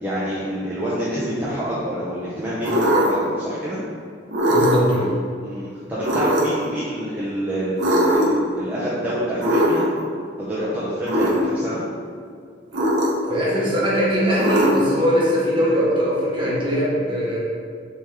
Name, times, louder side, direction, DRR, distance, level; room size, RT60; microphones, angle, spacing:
voice 1, 0.0-3.8 5.4-9.9 10.4-11.8, equal, 10° right, -10 dB, 0.5 m, -27 dB
sound 1, 2.6-3.3 4.3-5.0 6.0-6.7 7.8-8.5 9.4-10.0 11.0-11.5 12.7-13.4 14.4-15.0, equal, 80° right, 0.6 m, -20 dB
voice 2, 4.5-5.1 13.3-17.4, equal, 30° right, -7 dB, 0.9 m, -21 dB
3.5 x 2.9 x 3.2 m, 2.2 s
head